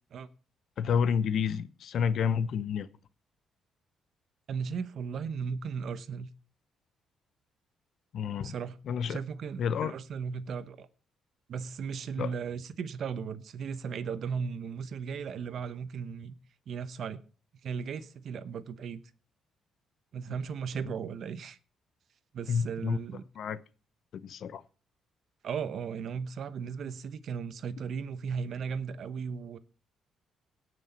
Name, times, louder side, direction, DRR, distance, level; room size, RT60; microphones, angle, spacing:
voice 1, 0.8-2.9 8.1-8.5 8.9-9.2 9.6-10.0 12.2-12.3 22.5-23.0 23.4-23.6 24.1-24.6, left 7 dB, 65° left, 0.8 m, -29 dB
voice 2, 4.5-6.3 8.4-8.8 9.1-10.9 11.5-16.3 16.7-17.2 17.6-19.0 20.1-21.6 22.3-23.2 25.4-29.6, right 6 dB, 65° right, 0.9 m, -36 dB
17.5 x 6.3 x 4.3 m
cardioid pair, 90°, 0 cm